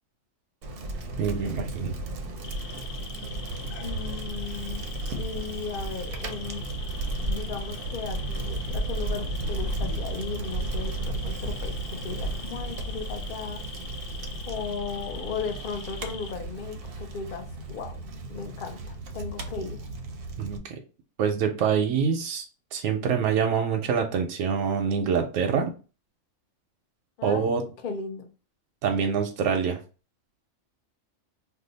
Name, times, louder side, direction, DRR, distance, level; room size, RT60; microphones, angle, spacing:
Bicycle, 0.6-20.6, right 2 dB, 60° right, 0.7 m, -34 dB
voice 1, 1.2-1.9 20.4-20.8 21.2-22.4 22.7-25.7 27.2-27.6 28.8-29.8, right 6 dB, 85° right, 1.0 m, -25 dB
sound 1, 2.4-16.3, left 6 dB, 90° left, 1.2 m, -43 dB
voice 2, 3.8-4.9 5.2-6.6 7.3-13.6 14.5-18.0 18.3-19.8 27.2-28.3, left 5 dB, 50° left, 0.7 m, -36 dB
2.7 x 2.2 x 3.9 m
omnidirectional pair, 1.3 m